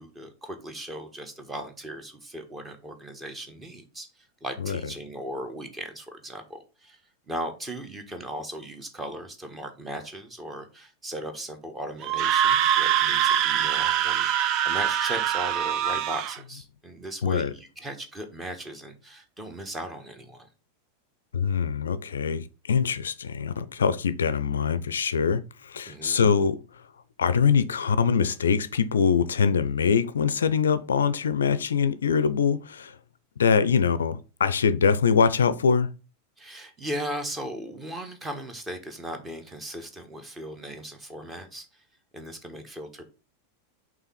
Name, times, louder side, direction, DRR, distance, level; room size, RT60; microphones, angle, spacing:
voice 1, 0.0-7.0 7.3-20.5 25.9-26.2 36.4-41.8 42.1-43.0, right 1 dB, 15° right, 1.3 m, -37 dB
Screaming, 12.0-16.4, right 10 dB, 40° right, 0.5 m, -24 dB
voice 2, 17.2-17.5 21.3-26.9 27.2-33.0 33.4-35.9, left 6 dB, 65° left, 0.4 m, -23 dB
5.6 x 3.7 x 5.6 m
figure-of-eight pair, 90°, 0 cm